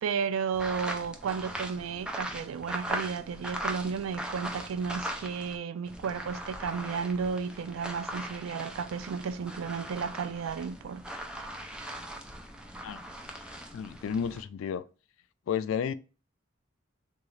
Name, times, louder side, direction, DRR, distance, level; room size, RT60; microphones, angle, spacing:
voice 1, 0.0-11.0 11.4-11.6, right 6 dB, 90° right, 0.3 m, -33 dB
sound 1, 0.5-5.6 5.9-14.4, right 1 dB, 5° right, 0.4 m, -39 dB
voice 2, 13.7-14.8 15.5-15.9, left 7 dB, 75° left, 0.3 m, -31 dB
3.8 x 2.3 x 3.1 m
head